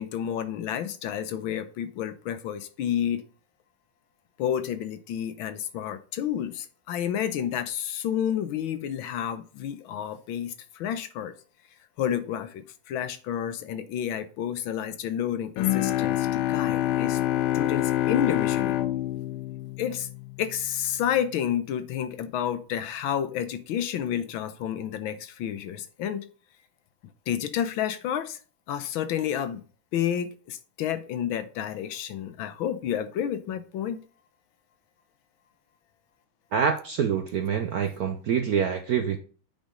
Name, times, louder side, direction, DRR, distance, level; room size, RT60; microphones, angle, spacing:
voice 1, 0.0-3.2 4.4-11.3 12.0-17.2 17.5-18.8 19.8-20.1 20.4-26.3 27.3-28.4 28.7-29.6 29.9-34.0, left 9 dB, 75° left, 1.5 m, -30 dB
Bowed string instrument, 15.6-20.7, left 14 dB, 90° left, 1.5 m, -26 dB
voice 2, 36.5-39.2, right 7 dB, 70° right, 0.9 m, -26 dB
8.8 x 5.2 x 3.7 m
omnidirectional pair, 2.4 m